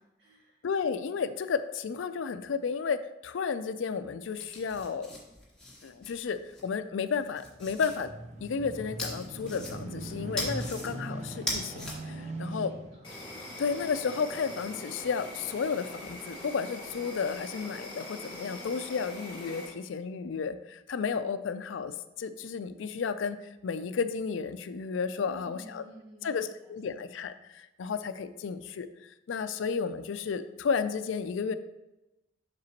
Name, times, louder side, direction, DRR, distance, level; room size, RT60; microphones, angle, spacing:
voice 1, 0.0-0.6 12.5-13.1 25.2-26.5, equal, 60° right, -4 dB, 2.1 m, -52 dB
voice 2, 0.6-5.1 5.8-8.1 8.4-12.7 13.6-25.8 26.2-28.9 29.3-31.5, left 5 dB, 80° left, 11 dB, 0.4 m, -32 dB
sound 1, 4.3-6.6 7.1-8.0 9.0-10.0 10.4-10.9 11.3-11.9, left 2 dB, 5° left, 1.5 m, -38 dB
sound 2, 7.4-16.2 16.8-16.9, right 1 dB, 35° right, 0.6 m, -41 dB
Insect, 13.0-19.7, left 1 dB, 25° left, 1.8 m, -43 dB
7.6 x 5.9 x 2.9 m, 0.98 s
head